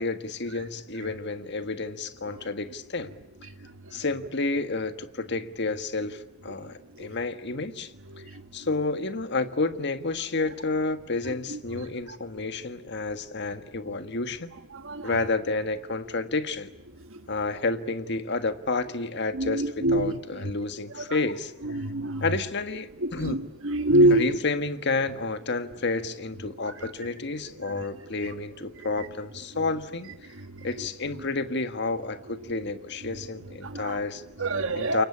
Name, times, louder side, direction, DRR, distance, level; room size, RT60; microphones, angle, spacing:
voice 1, 0.0-3.1 3.9-7.9 8.5-14.5 15.0-16.7 17.3-21.5 22.2-23.4 24.0-30.3 30.6-34.2 34.7-35.0, left 3 dB, 55° left, 10 dB, 1.6 m, -30 dB
voice 2, 19.4-20.2 21.7-22.2 23.0-23.4 23.6-24.2 33.6-34.0 34.4-35.0, right 1 dB, 65° right, 7 dB, 1.4 m, -24 dB
29.0 x 24.0 x 8.6 m, 0.89 s
head